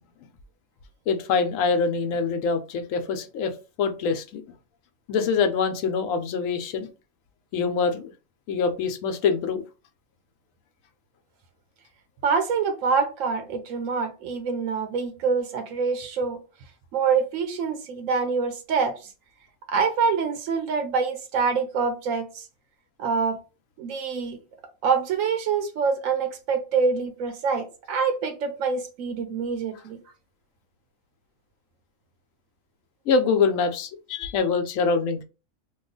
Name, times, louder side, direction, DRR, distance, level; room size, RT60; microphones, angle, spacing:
voice 1, 1.1-4.4 5.1-6.9 7.5-8.1 8.5-9.6 33.1-35.2, left 5 dB, 80° left, 1.0 m, -24 dB
voice 2, 12.2-16.4 16.9-19.1 19.7-22.4 23.0-23.4 23.8-24.4 24.8-30.0, right 5 dB, 85° right, 1.0 m, -25 dB
2.9 x 2.3 x 3.7 m
omnidirectional pair, 1.4 m